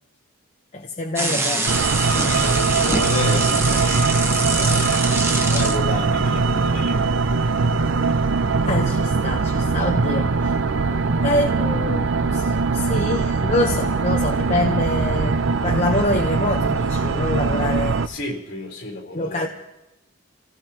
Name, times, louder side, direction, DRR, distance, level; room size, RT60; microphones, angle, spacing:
voice 1, 0.7-1.8 4.7-4.9 8.6-10.5 11.2-18.0 19.1-19.5, left 2 dB, 35° left, 1 dB, 0.9 m, -26 dB
sound 1, 1.2-5.8, right 2 dB, 15° right, 1.1 m, -25 dB
sound 2, 1.7-18.1, right 4 dB, 70° right, 0.6 m, -21 dB
voice 2, 2.1-7.0 18.1-19.5, left 2 dB, 60° left, 0 dB, 4.0 m, -31 dB
28.0 x 17.0 x 3.0 m, 0.93 s
head